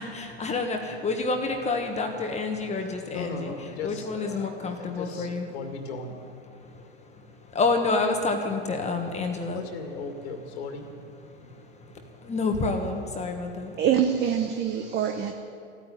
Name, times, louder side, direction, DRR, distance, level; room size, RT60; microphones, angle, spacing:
voice 1, 0.0-3.5 3.8-5.5 6.6-9.6 11.3-13.8, left 3 dB, 20° left, 4 dB, 1.4 m, -29 dB
voice 2, 3.1-6.2 9.5-10.9 11.4-11.5, left 4 dB, 60° left, 5 dB, 2.2 m, -37 dB
voice 3, 13.8-15.3, right 9 dB, 30° right, 5 dB, 1.0 m, -24 dB
15.0 x 9.7 x 10.0 m, 2.4 s
hypercardioid pair, 105°, 36 cm